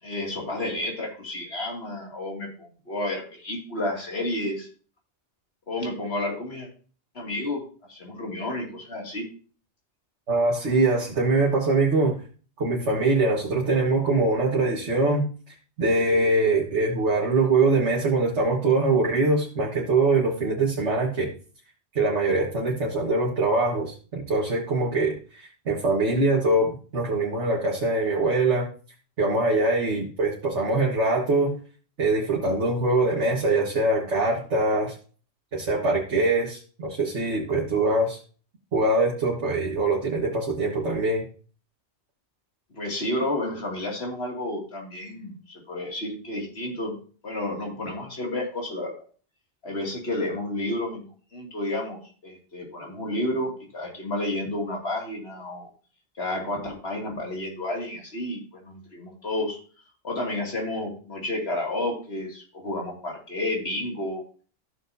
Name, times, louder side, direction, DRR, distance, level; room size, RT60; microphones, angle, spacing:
voice 1, 0.0-4.7 5.7-6.7 7.1-7.6 7.9-9.3 42.7-46.9 47.2-48.9 49.6-51.0 51.3-55.7 56.2-59.6 60.0-64.2, left 1 dB, 60° left, 0 dB, 2.7 m, -31 dB
voice 2, 10.3-12.2 12.6-15.3 15.8-21.3 22.0-28.7 29.2-31.5 32.0-35.0 35.5-38.2 38.7-41.3, right 2 dB, 80° right, -3 dB, 1.9 m, -23 dB
14.5 x 6.5 x 2.7 m, 0.40 s
omnidirectional pair, 1.2 m